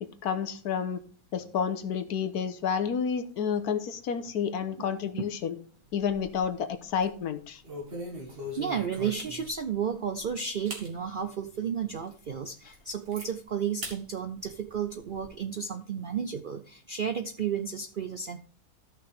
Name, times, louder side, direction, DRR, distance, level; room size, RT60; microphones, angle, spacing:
voice 1, 0.0-1.0 1.3-5.5 5.9-7.6, left 7 dB, 85° left, 10 dB, 1.4 m, -30 dB
sound 1, 5.8-6.5 6.9-7.1 7.6-9.7 10.2-10.3 10.6-10.9 11.4-11.5 12.0-12.1 12.4-13.3 13.8-14.0 14.4-15.3, equal, 40° right, 2.1 m, -41 dB
voice 2, 8.3-18.4, right 7 dB, 65° right, 8 dB, 0.5 m, -33 dB
14.0 x 5.9 x 3.5 m, 0.43 s
omnidirectional pair, 1.6 m